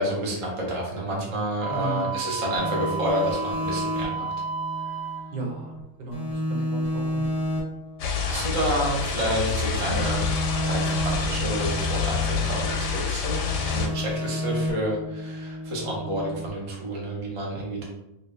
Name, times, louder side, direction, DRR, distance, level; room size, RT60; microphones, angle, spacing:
voice 1, 0.0-4.3 8.2-10.2 10.6-17.8, right 1 dB, 35° right, -3 dB, 0.5 m, -29 dB
Wind instrument woodwind instrument, 1.6-5.3, right 5 dB, 55° right, 1.6 m, -32 dB
voice 2, 1.7-2.1 5.3-5.7 6.0-7.2, right 4 dB, 75° right, 0 dB, 1.3 m, -34 dB
sound 1, 2.5-5.8 6.1-9.4 9.7-12.9 13.2-16.5, equal, 25° left, 1.3 m, -32 dB
sound 2, 8.0-13.9, left 5 dB, 75° left, 1.1 m, -27 dB
3.0 x 2.7 x 3.3 m, 0.90 s
omnidirectional pair, 1.9 m